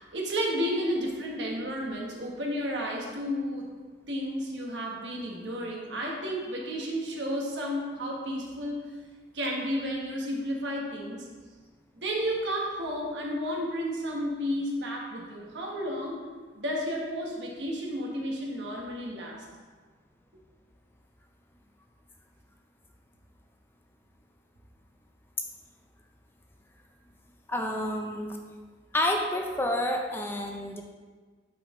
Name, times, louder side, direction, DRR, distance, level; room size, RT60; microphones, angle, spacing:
voice 1, 0.0-3.7 4.1-8.9 9.3-11.3 11.9-19.5, equal, 80° right, -1 dB, 1.2 m, -32 dB
voice 2, 27.5-28.4 28.9-30.8, left 1 dB, 10° left, 2 dB, 0.4 m, -29 dB
5.7 x 5.7 x 3.7 m, 1.4 s
head